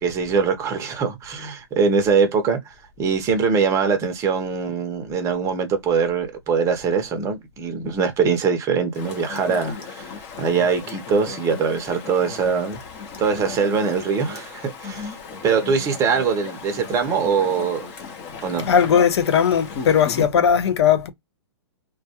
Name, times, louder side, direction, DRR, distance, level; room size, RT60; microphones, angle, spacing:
voice 1, 0.0-2.6 3.0-10.1 10.4-12.8 13.2-15.2 15.4-17.8 18.4-18.7, right 5 dB, 20° right, 0.6 m, -22 dB
Chatter / Stream, 8.9-20.3, left 5 dB, 35° left, 0.8 m, -36 dB
voice 2, 18.7-21.1, left 8 dB, 70° left, 0.5 m, -18 dB
2.2 x 2.2 x 2.8 m
hypercardioid pair, 140°, 14 cm